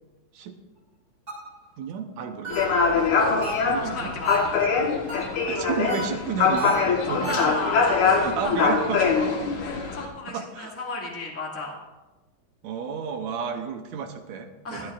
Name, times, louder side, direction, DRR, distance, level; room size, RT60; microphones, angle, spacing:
sound 1, 1.3-1.7 2.4-2.9 3.4-3.9 4.2-4.7 5.1-5.5 5.9-7.5, right 2 dB, 30° right, 4.8 m, -35 dB
voice 1, 1.8-2.8 3.3-4.1 5.4-7.6 8.2-9.1 10.3-10.8 12.6-14.9, right 6 dB, 75° right, 6 dB, 1.9 m, -32 dB
sound 2, 2.5-10.1, left 5 dB, 75° left, 2.8 m, -23 dB
voice 2, 2.9-3.3 3.8-4.6 7.0-8.7 9.1-9.3 9.5-11.7 14.6-14.9, left 3 dB, 5° left, -3 dB, 1.2 m, -33 dB
24.0 x 8.5 x 2.5 m, 1.1 s
omnidirectional pair, 3.5 m